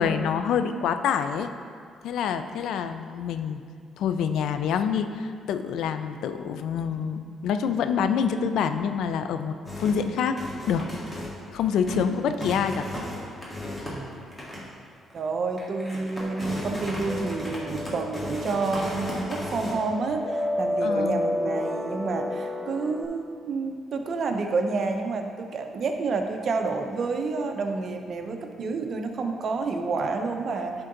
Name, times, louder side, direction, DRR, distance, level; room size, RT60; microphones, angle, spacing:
voice 1, 0.0-1.5 2.0-3.6 4.0-10.4 10.7-10.9 11.5-12.9 20.8-21.2, left 7 dB, 80° left, 9 dB, 0.4 m, -26 dB
sound 1, 9.7-10.1 10.4-11.6 11.8-12.1 12.4-14.7 15.1-15.2 15.6-19.8, left 1 dB, 15° left, 1.9 m, -35 dB
voice 2, 11.9-12.7 13.9-14.1 15.1-30.7, right 4 dB, 55° right, 5 dB, 0.7 m, -29 dB
sound 2, 16.2-23.0, left 1 dB, 15° right, 0.6 m, -31 dB
10.5 x 3.8 x 3.9 m, 2.2 s
cardioid pair, 90°, 0 cm